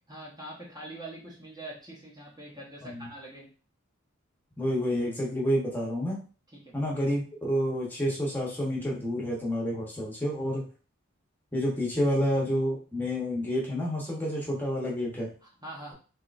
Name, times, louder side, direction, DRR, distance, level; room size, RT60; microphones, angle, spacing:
voice 1, 0.1-3.5 6.5-6.8 15.4-15.9, right 1 dB, 20° right, -4 dB, 1.0 m, -44 dB
voice 2, 4.6-6.2 6.7-10.6 11.5-15.3, equal, 10° left, -4 dB, 1.0 m, -29 dB
3.7 x 2.9 x 2.5 m, 0.37 s
head